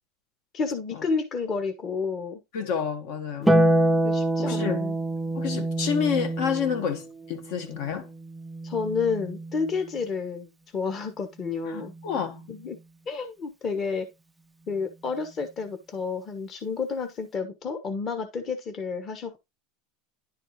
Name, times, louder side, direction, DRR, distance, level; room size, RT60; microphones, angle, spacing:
voice 1, 0.5-2.4 3.4-5.0 8.6-11.9 12.5-12.8 13.1-14.1 14.7-19.4, left 5 dB, 30° left, 1.2 m, -30 dB
voice 2, 2.5-3.5 4.4-4.8 5.3-8.1 11.7-12.4, left 7 dB, 65° left, 1.4 m, -29 dB
Harp, 3.5-10.0 11.6-12.6, right 1 dB, 5° right, 0.4 m, -27 dB
10.5 x 4.3 x 3.2 m
supercardioid pair, 150°, 0 cm